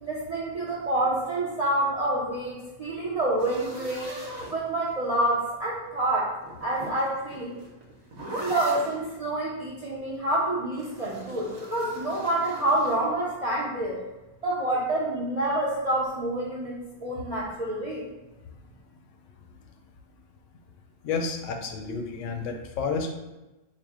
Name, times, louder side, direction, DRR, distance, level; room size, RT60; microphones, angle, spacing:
voice 1, 0.0-4.1 4.5-7.5 8.4-14.0 14.4-18.0, right 1 dB, 55° right, -5 dB, 0.4 m, -27 dB
sound 1, 3.4-5.2 6.4-9.0 10.8-13.0, right 1 dB, 75° right, 1.3 m, -40 dB
voice 2, 21.0-23.1, left 4 dB, 70° left, 4 dB, 0.8 m, -30 dB
4.6 x 2.1 x 3.5 m, 1.1 s
omnidirectional pair, 1.5 m